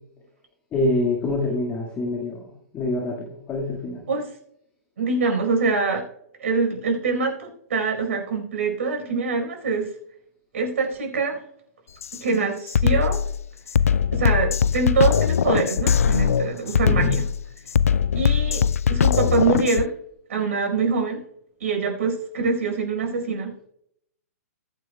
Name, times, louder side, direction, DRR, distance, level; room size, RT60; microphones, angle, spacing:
voice 1, 0.7-4.0 16.9-17.1, left 2 dB, 20° left, -1 dB, 1.9 m, -26 dB
voice 2, 5.0-6.0 6.4-9.9 10.5-11.4 12.2-13.2 14.1-17.3 18.1-18.6 18.9-19.9 20.3-21.2 21.6-23.7, right 4 dB, 55° right, 2 dB, 4.7 m, -24 dB
Drum kit, 12.0-12.2 12.7-19.9, left 8 dB, 65° left, 0.3 m, -21 dB
21.0 x 9.0 x 2.3 m, 0.73 s
figure-of-eight pair, 115°, 8 cm